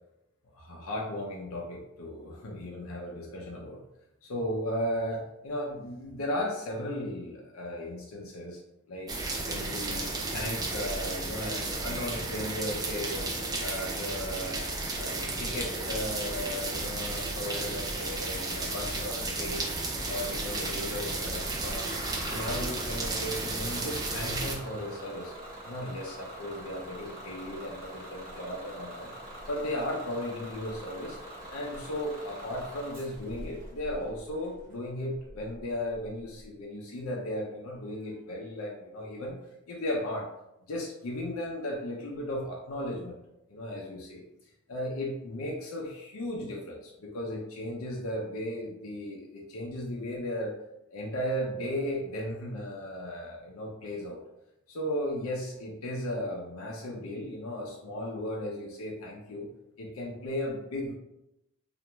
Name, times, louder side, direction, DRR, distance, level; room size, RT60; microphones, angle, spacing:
voice 1, 0.5-3.8 4.2-8.6 8.9-9.1 9.5-13.3 13.6-14.7 15.0-19.7 20.1-21.9 22.3-25.3 25.7-29.1 29.5-31.2 31.5-39.4 39.7-40.3 40.7-43.2 43.5-44.2 44.7-50.5 50.9-54.2 54.7-59.5 59.8-60.9, left 1 dB, 90° left, -2 dB, 0.5 m, -36 dB
sound 1, 9.1-24.6, right 2 dB, 20° right, 0.3 m, -33 dB
Bus / Engine starting, 20.2-36.4, right 1 dB, 40° right, 0.7 m, -44 dB
2.4 x 2.1 x 2.9 m, 0.86 s
head